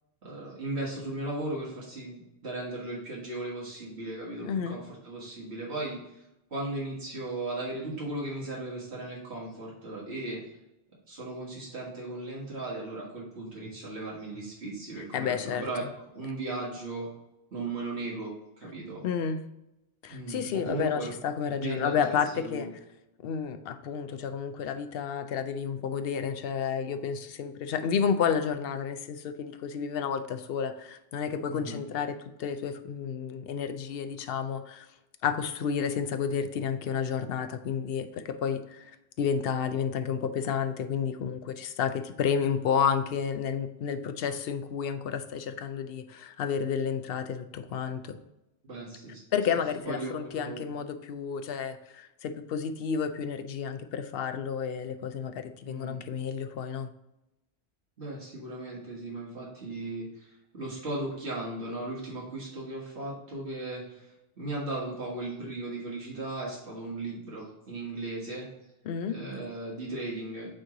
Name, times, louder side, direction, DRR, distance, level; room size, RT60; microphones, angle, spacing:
voice 1, 0.2-6.3 6.5-10.4 11.1-15.9 16.2-17.1 17.5-18.3 18.6-19.0 20.1-21.1 21.5-22.7 31.5-31.8 48.7-49.2 49.8-50.6 55.6-56.0 58.0-68.5 69.1-70.5, right 2 dB, 85° right, -5 dB, 2.0 m, -37 dB
voice 2, 4.4-4.8 15.1-15.6 19.0-19.4 20.0-22.7 23.2-34.8 35.2-48.2 49.3-56.9 68.9-69.2, left 7 dB, 70° left, 9 dB, 0.8 m, -31 dB
8.6 x 3.2 x 3.7 m, 0.90 s
omnidirectional pair, 1.1 m